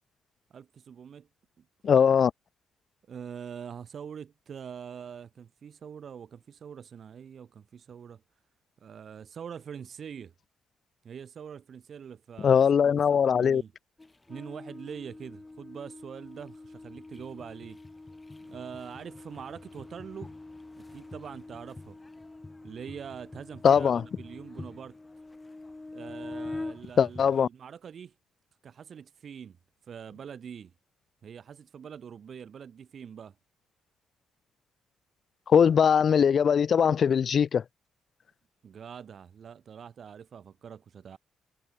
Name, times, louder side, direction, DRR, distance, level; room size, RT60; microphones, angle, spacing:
voice 1, 0.5-1.3 1.6-1.7 3.1-8.2 8.8-10.3 11.0-13.7 14.3-17.8 18.4-20.3 20.9-22.0 22.6-25.0 25.9-28.1 28.6-29.6 29.9-30.7 31.2-33.3 38.6-41.2, right 7 dB, 55° right, 1.2 m, -44 dB
voice 2, 1.8-2.3 12.4-13.6 23.6-24.0 27.0-27.5 35.5-37.6, left 7 dB, 50° left, 0.4 m, -21 dB
sound 1, 14.0-27.4, left 2 dB, 15° left, 7.0 m, -44 dB
cardioid pair, 90°, 0 cm